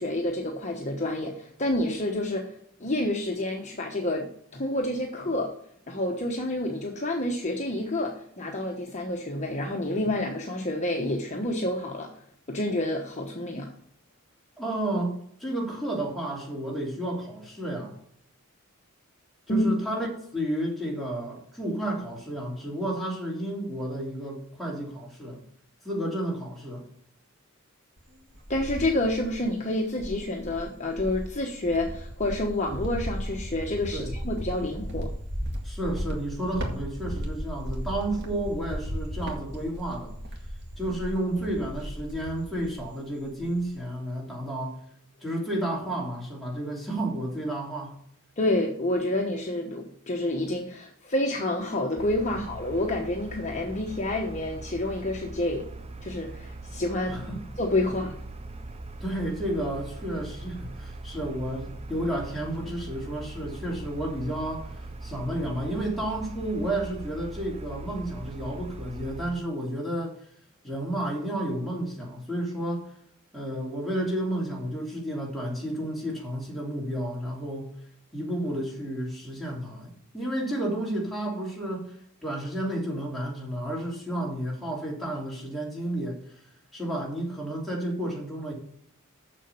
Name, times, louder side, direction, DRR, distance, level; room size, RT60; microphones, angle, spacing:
voice 1, 0.0-2.5 2.8-5.5 5.9-12.1 12.5-13.7 19.5-19.7 28.5-35.1 48.4-55.7 56.0-57.2 57.6-58.1, left 1 dB, 35° left, 1 dB, 1.1 m, -28 dB
voice 2, 14.6-17.9 19.5-25.4 25.8-26.8 33.9-34.1 35.6-40.1 40.8-44.8 45.2-48.0 52.3-52.4 57.1-57.4 59.0-64.7 65.0-70.2 70.6-72.9 73.3-77.7 78.1-82.0 82.2-86.2 86.7-88.5, right 1 dB, ahead, -4 dB, 3.1 m, -31 dB
Cricket, 28.0-29.5 30.0-42.9 43.2-43.8, equal, 55° right, 2.1 m, -36 dB
sound 1, 52.0-69.3, right 2 dB, 30° right, 0.6 m, -41 dB
7.3 x 6.9 x 6.9 m, 0.67 s
head